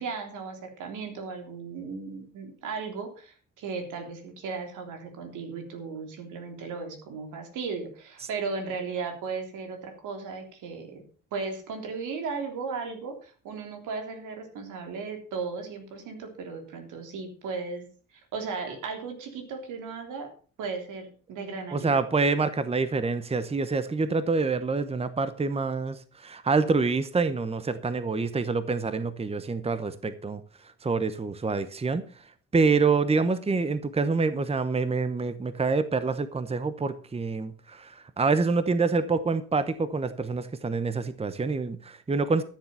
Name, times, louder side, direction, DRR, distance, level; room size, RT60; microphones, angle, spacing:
voice 1, 0.0-11.0 11.3-17.9 18.3-20.3 20.6-22.0, right 4 dB, 85° right, 4 dB, 3.4 m, -36 dB
voice 2, 21.7-30.4 30.8-32.1 32.5-42.4, right 4 dB, 20° right, 12 dB, 1.0 m, -26 dB
13.0 x 7.3 x 5.6 m, 0.40 s
cardioid pair, 90°, 30 cm